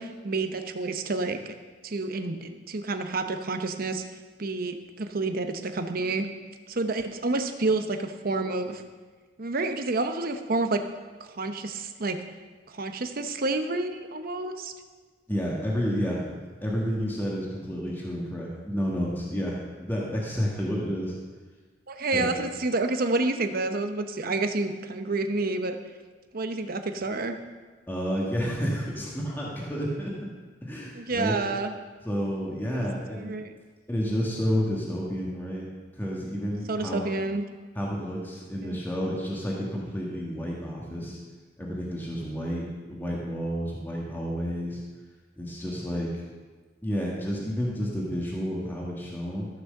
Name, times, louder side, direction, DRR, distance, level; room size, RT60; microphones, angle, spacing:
voice 1, 0.0-1.6 1.8-4.0 4.4-6.3 6.7-8.8 9.4-10.8 11.2-12.2 12.7-14.7 21.9-25.8 26.3-27.4 30.9-31.7 32.7-32.9 33.2-33.5 36.7-37.4 38.6-38.8, right 3 dB, 55° right, 7 dB, 0.9 m, -29 dB
voice 2, 15.3-21.2 22.1-22.3 27.9-30.1 30.6-31.3 32.0-33.3 33.9-35.7 35.9-37.0 37.7-41.2 41.6-44.8 45.4-46.1 46.8-49.5, equal, 10° left, -4 dB, 1.6 m, -30 dB
13.5 x 6.2 x 6.6 m, 1.4 s
head